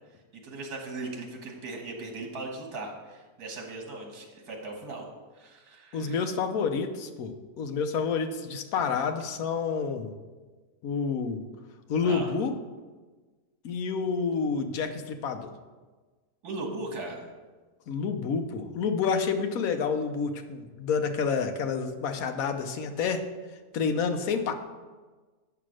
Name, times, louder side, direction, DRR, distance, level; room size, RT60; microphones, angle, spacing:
voice 1, 0.4-5.1 5.3-6.2 12.0-12.3 16.4-17.3, right 2 dB, 75° right, 2 dB, 1.9 m, -38 dB
voice 2, 5.9-10.1 10.8-11.4 11.9-12.5 13.6-15.5 17.9-23.2 23.7-24.5, left 5 dB, 65° left, 6 dB, 1.2 m, -29 dB
8.0 x 5.8 x 6.3 m, 1.3 s
omnidirectional pair, 1.7 m